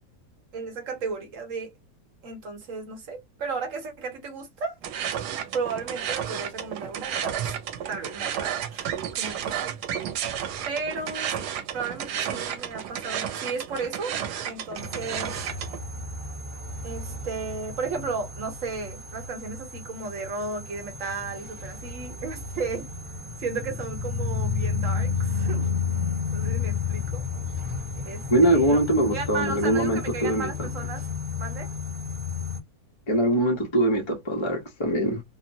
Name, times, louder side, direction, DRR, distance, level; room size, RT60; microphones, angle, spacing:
voice 1, 0.5-1.7 2.2-4.8 5.5-7.5 7.9-9.8 10.6-11.5 11.7-14.2 14.4-15.4 16.8-22.9 23.4-25.7 26.3-27.2 28.1-28.8 29.1-31.1 31.4-31.7, right 4 dB, 60° right, 1.1 m, -34 dB
sound 1, 4.8-15.8, right 9 dB, 85° right, 1.1 m, -32 dB
sound 2, 14.8-32.6, left 5 dB, 25° right, 0.8 m, -32 dB
voice 2, 28.3-30.7 33.1-35.2, right 1 dB, 35° left, 0.4 m, -23 dB
2.9 x 2.1 x 2.6 m
omnidirectional pair, 1.7 m